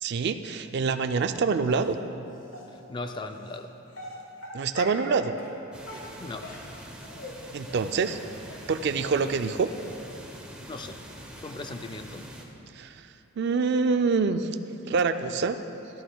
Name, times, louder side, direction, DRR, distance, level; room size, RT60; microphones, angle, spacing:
voice 1, 0.0-2.0 4.5-5.3 7.5-8.2 8.7-9.7 12.8-13.0 13.4-14.5 14.9-15.6, right 5 dB, 50° right, 9 dB, 0.3 m, -25 dB
Dog, 1.6-1.9 2.5-2.6 3.4-3.6 3.9-5.1 5.4-5.5 5.8-7.3 7.6-7.8 8.0-8.2 8.5-8.6 9.0-9.1 9.5-9.6 9.8-9.9, left 1 dB, 65° left, 1.5 m, -42 dB
voice 2, 2.9-3.7 6.2-6.5 10.7-11.0 11.4-12.3, left 2 dB, 20° left, 6 dB, 0.3 m, -38 dB
sound 1, 5.7-12.4, right 1 dB, 5° right, 0.7 m, -45 dB
13.0 x 12.5 x 2.3 m, 2.9 s
head